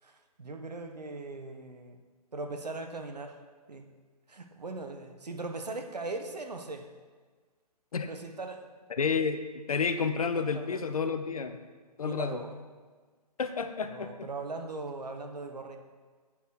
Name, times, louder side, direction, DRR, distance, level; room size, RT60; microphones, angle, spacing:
voice 1, 0.0-2.0 2.3-3.4 3.7-3.9 4.3-6.9 8.0-8.7 10.3-10.8 12.0-12.6 13.9-15.8, right 3 dB, 75° right, 5 dB, 1.2 m, -39 dB
voice 2, 8.9-11.6 12.0-12.4 13.4-14.3, left 5 dB, 60° left, 9 dB, 0.8 m, -30 dB
8.4 x 7.5 x 4.6 m, 1.4 s
figure-of-eight pair, 135°, 21 cm